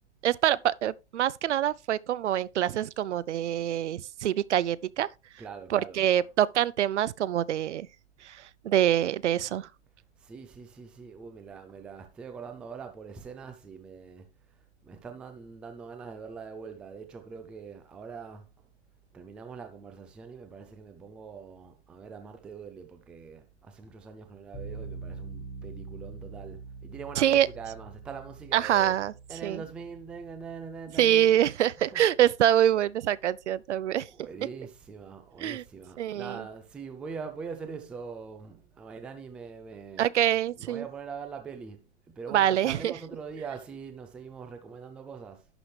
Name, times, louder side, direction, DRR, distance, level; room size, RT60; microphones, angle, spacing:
voice 1, 0.2-5.1 5.7-7.9 8.2-9.7 27.2-27.5 28.5-29.1 29.4-29.6 31.0-34.1 35.4-35.6 36.0-36.4 40.0-40.8 42.3-42.9, right 11 dB, 80° right, 0.6 m, -25 dB
voice 2, 5.4-6.3 10.2-14.3 14.8-18.7 19.1-28.9 29.3-31.4 31.8-32.1 33.7-40.1 40.6-45.5, right 5 dB, 5° right, 0.3 m, -43 dB
sound 1, 24.5-33.4, right 3 dB, 30° left, 1.8 m, -45 dB
11.0 x 6.0 x 3.3 m
hypercardioid pair, 130°, 35 cm